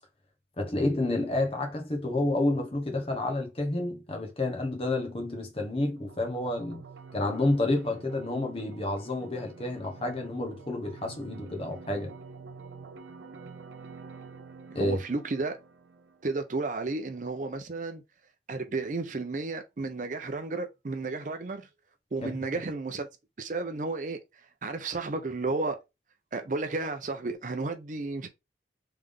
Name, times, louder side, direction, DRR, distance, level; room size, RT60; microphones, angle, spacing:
voice 1, 0.6-6.8 7.1-12.1 14.7-15.0 22.2-22.3, left 2 dB, 30° left, 1.0 m, -29 dB
sound 1, 5.6-16.6, right 4 dB, 90° right, 0.6 m, -48 dB
voice 2, 14.7-15.6 16.2-18.0 18.5-21.7 22.1-23.1 23.4-24.2 24.6-25.8 26.3-28.3, right 3 dB, 45° right, 0.5 m, -32 dB
3.4 x 3.3 x 3.6 m
head